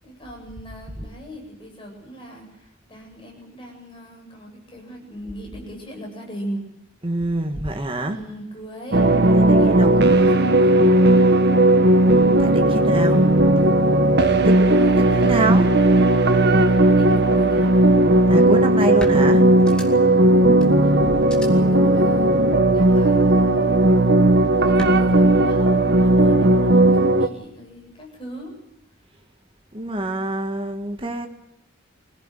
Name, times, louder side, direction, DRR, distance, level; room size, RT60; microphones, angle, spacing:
voice 1, 0.0-6.7 8.0-9.1 9.3-10.8 12.5-13.3 14.7-15.3 16.5-18.0 18.9-19.1 20.0-24.1 24.6-28.6, equal, 25° left, 1 dB, 7.7 m, -39 dB
voice 2, 7.0-8.2 9.3-10.4 12.4-13.2 14.5-15.7 18.3-19.5 21.6-21.7 29.7-31.3, right 1 dB, 25° right, 4 dB, 1.7 m, -26 dB
sound 1, 8.9-27.3, right 1 dB, 55° right, 1.5 m, -16 dB
sound 2, 18.4-18.5 19.0-20.2 20.6-20.7 21.2-21.5 22.8-23.3 24.8-24.9, equal, 5° left, 3.6 m, -34 dB
25.5 x 17.0 x 9.1 m, 0.81 s
head